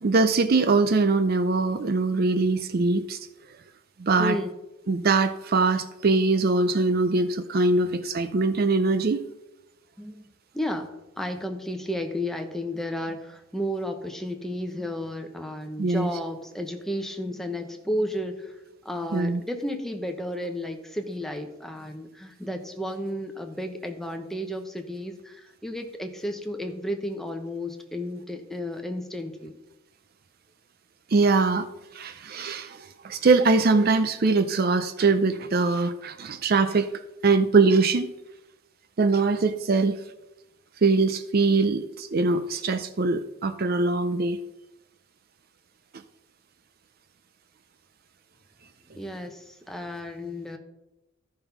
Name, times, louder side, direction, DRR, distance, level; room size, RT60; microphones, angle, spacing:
voice 1, 0.0-3.2 4.0-4.4 4.9-9.2 15.8-16.1 19.1-19.4 31.1-31.7 31.9-36.9 37.2-38.1 39.0-40.0 40.8-44.4, right 3 dB, 45° right, 10 dB, 0.4 m, -22 dB
voice 2, 4.2-4.5 7.8-8.0 10.0-10.2 10.5-18.6 18.8-29.5 48.9-50.6, equal, ahead, 4 dB, 0.9 m, -33 dB
13.0 x 5.4 x 5.9 m, 0.97 s
head